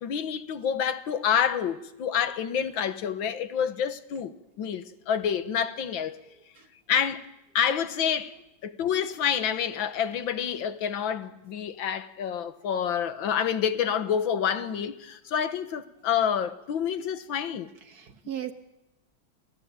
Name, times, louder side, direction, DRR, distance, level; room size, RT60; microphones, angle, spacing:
voice 1, 0.0-6.2 6.9-7.3 7.6-8.3 8.6-17.7, left 8 dB, 75° left, 1.9 m, -28 dB
voice 2, 17.9-18.5, right 10 dB, 55° right, 1.6 m, -37 dB
27.5 x 17.0 x 8.9 m
omnidirectional pair, 2.2 m